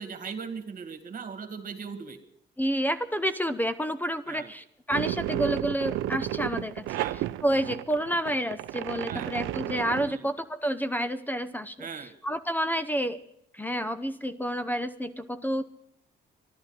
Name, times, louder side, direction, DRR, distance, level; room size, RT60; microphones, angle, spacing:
voice 1, 0.0-2.2 4.3-4.5 6.9-7.2 9.1-9.3 10.0-10.3 11.8-12.1, right 5 dB, 45° right, 8 dB, 2.1 m, -39 dB
voice 2, 2.6-6.8 7.1-13.2 13.5-15.6, equal, 10° left, 12 dB, 0.8 m, -29 dB
sound 1, 4.9-10.1, right 14 dB, 85° right, 0.5 m, -32 dB
11.5 x 11.5 x 9.8 m, 0.78 s
cardioid pair, 90°, 20 cm